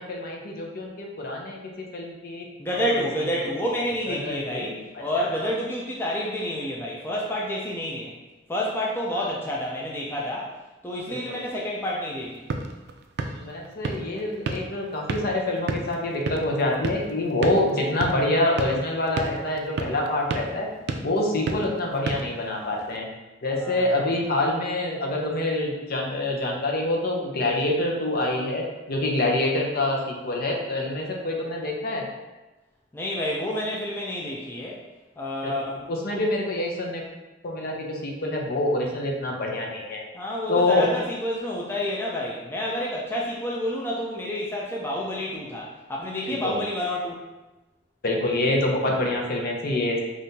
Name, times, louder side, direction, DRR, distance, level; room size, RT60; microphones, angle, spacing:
voice 1, 0.0-2.5 2.7-3.0 4.1-4.8 5.2-5.3 9.2-9.3 11.1-11.4 13.4-20.7 21.0-23.1 23.4-32.1 35.4-35.5 35.9-37.0 37.4-40.0 40.5-40.9 46.2-46.6 48.0-50.0, left 1 dB, 55° left, 0 dB, 0.7 m, -26 dB
voice 2, 2.6-8.1 8.5-10.5 10.8-12.4 23.6-24.0 32.9-34.8 35.2-36.2 40.1-47.2, left 1 dB, 10° left, -4 dB, 0.4 m, -29 dB
sound 1, 12.1-23.0, right 3 dB, 60° right, 0.3 m, -34 dB
5.3 x 2.5 x 2.7 m, 1.1 s
head